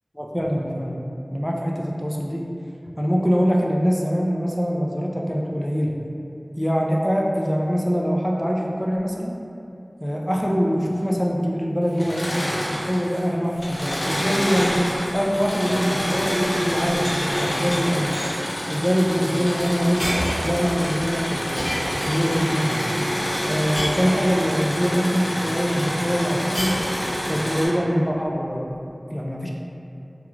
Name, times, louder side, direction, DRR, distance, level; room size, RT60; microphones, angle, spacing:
voice 1, 0.2-1.0 1.3-2.5 3.0-5.9 6.6-9.4 10.0-12.3 12.9-14.8 15.1-18.3 18.7-20.1 20.4-21.7 22.0-22.8 23.4-26.8 27.3-28.8 29.1-29.5, equal, 5° left, -2 dB, 0.3 m, -23 dB
Engine / Mechanisms, 11.9-13.2 13.5-27.7, equal, 75° left, 0.7 m, -27 dB
sound 1, 13.5-16.5 16.7-17.8 18.1-18.5 19.6-19.7 20.0-20.6 21.5-22.4 23.7-24.6 26.5-27.3, equal, 45° left, 0.9 m, -31 dB
2.4 x 2.3 x 3.0 m, 2.7 s
wide cardioid pair, 50°, 0 cm